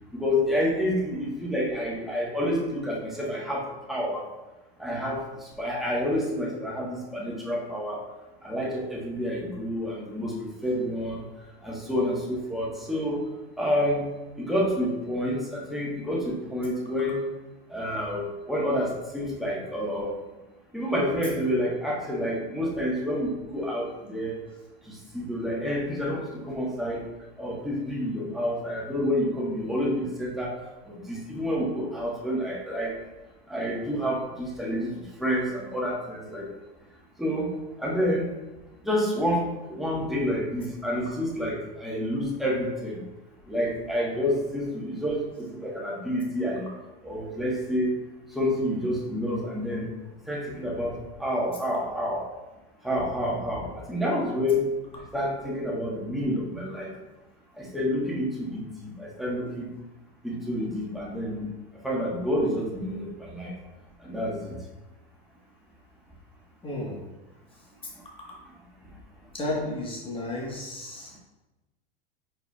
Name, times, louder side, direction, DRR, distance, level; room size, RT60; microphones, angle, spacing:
voice 1, 0.1-4.2 4.8-5.2 5.6-8.0 8.4-10.3 10.6-11.2 11.6-13.2 13.6-14.0 14.4-17.2 17.7-20.1 20.7-24.4 24.9-27.0 27.4-30.5 30.9-32.9 33.5-34.9 35.2-36.5 37.2-37.5 37.8-38.3 38.8-43.0 43.5-46.7 47.0-47.9 48.3-49.9 50.3-50.9 51.2-52.2 52.8-54.7 55.1-56.9 57.6-59.7 60.2-61.5 61.8-63.5 64.0-64.5, equal, ahead, -4 dB, 1.3 m, -28 dB
voice 2, 66.6-67.0 69.3-71.2, left 2 dB, 15° left, -3 dB, 1.3 m, -32 dB
4.8 x 4.4 x 2.3 m, 1.1 s
hypercardioid pair, 100°, 30 cm